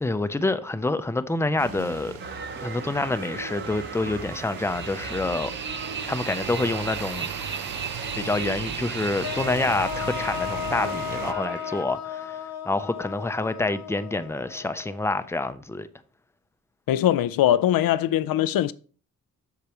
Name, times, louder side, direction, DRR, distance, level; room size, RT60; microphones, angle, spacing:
voice 1, 0.0-2.1 2.6-5.5 6.1-7.3 8.2-15.9, left 2 dB, 10° left, 0.5 m, -27 dB
sound 1, 1.6-11.3, right 7 dB, 85° right, 0.8 m, -37 dB
sound 2, 2.2-11.8, right 5 dB, 35° right, 0.8 m, -36 dB
sound 3, 9.2-15.3, left 9 dB, 50° left, 0.7 m, -35 dB
voice 2, 16.9-18.7, left 12 dB, 85° left, 0.5 m, -21 dB
8.3 x 6.7 x 3.0 m
wide cardioid pair, 115°, 34 cm